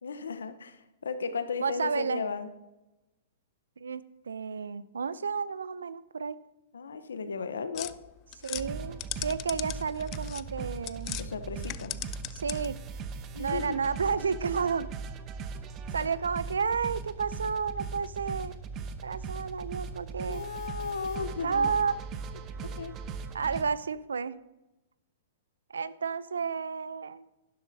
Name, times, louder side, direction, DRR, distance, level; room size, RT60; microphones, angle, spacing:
voice 1, 0.0-2.5 6.7-7.9 11.2-11.9 13.3-13.8 20.3-21.7 22.8-22.9, left 5 dB, 85° left, 11 dB, 0.8 m, -35 dB
voice 2, 1.6-2.2 3.8-6.4 8.4-11.2 12.3-12.8 13.4-14.9 15.9-18.6 19.0-20.4 21.4-21.9 23.3-24.4 25.7-27.2, right 5 dB, 85° right, 18 dB, 0.4 m, -31 dB
sound 1, 7.7-11.3 11.6-12.8, left 18 dB, 40° left, 0.4 m, -39 dB
sound 2, 8.5-23.6, right 5 dB, 30° right, 0.8 m, -39 dB
11.5 x 11.0 x 2.7 m, 1.0 s
hypercardioid pair, 115°, 0 cm